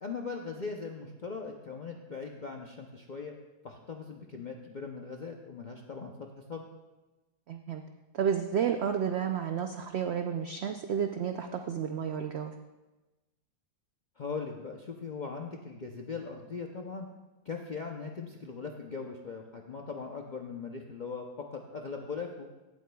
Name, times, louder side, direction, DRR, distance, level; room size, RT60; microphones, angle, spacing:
voice 1, 0.0-3.3 3.6-6.1 6.5-6.6 14.2-17.1 17.5-22.5, left 5 dB, 60° left, 1 dB, 0.4 m, -40 dB
voice 2, 7.5-7.8 8.1-12.5, right 8 dB, 90° right, 6 dB, 0.5 m, -31 dB
16.5 x 8.3 x 2.3 m, 1.1 s
omnidirectional pair, 1.7 m